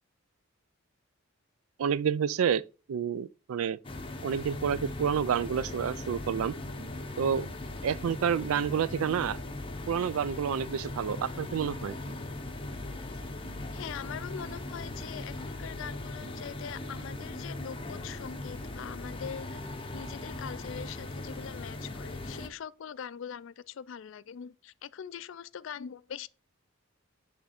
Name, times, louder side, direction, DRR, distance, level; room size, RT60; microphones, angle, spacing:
voice 1, 1.8-2.6 2.9-3.8 4.2-6.5 7.2-7.5 7.8-9.4 9.9-12.0, right 7 dB, 80° right, 0.4 m, -29 dB
sound 1, 3.8-22.5, left 2 dB, 25° left, 0.7 m, -39 dB
Melodía para Antü (Fachita), 5.2-22.2, right 1 dB, 20° right, 1.5 m, -56 dB
voice 2, 13.7-19.6 19.9-26.3, left 8 dB, 60° left, 0.3 m, -42 dB
8.6 x 3.4 x 4.2 m
head